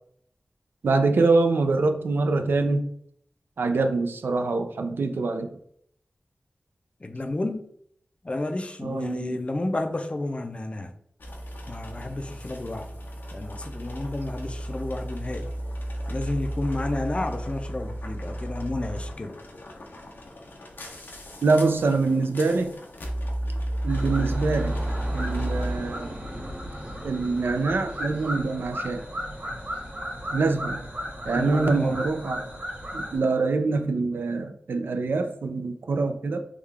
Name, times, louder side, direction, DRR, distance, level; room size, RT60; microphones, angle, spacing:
voice 1, 0.8-2.9 3.6-5.5 8.8-9.4 21.4-22.7 23.8-24.8 25.1-26.1 27.0-29.1 30.3-30.8 31.2-32.5 32.9-36.4, right 3 dB, 85° right, 0.4 m, -24 dB
voice 2, 7.0-7.6 8.2-10.9 11.7-12.9 13.3-15.5 16.1-19.4 31.3-32.0, left 2 dB, 35° left, 0.4 m, -31 dB
sound 1, 11.2-25.7, right 1 dB, 70° left, 0.6 m, -33 dB
sound 2, 23.9-33.2, equal, 50° right, 1.4 m, -35 dB
3.6 x 2.3 x 3.3 m
wide cardioid pair, 65°, 4 cm